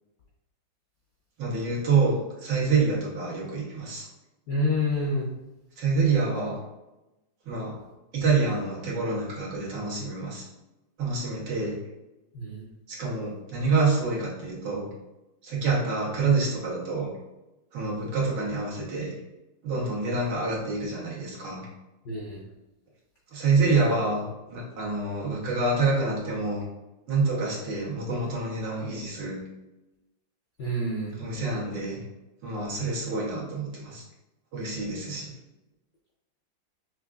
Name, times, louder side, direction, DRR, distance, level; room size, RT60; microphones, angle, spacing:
voice 1, 1.4-4.1 5.8-6.5 7.5-7.7 8.1-10.4 11.0-11.8 12.9-14.9 15.4-17.1 17.7-19.1 19.6-21.7 23.3-26.7 27.1-29.4 31.2-32.0 32.4-34.0 34.5-35.3, right 4 dB, 75° right, -5 dB, 1.8 m, -27 dB
voice 2, 4.5-5.3 12.3-12.6 22.0-22.4 30.6-31.2, left 1 dB, 65° left, -5 dB, 0.7 m, -28 dB
5.9 x 2.4 x 2.3 m, 1.0 s
omnidirectional pair, 2.0 m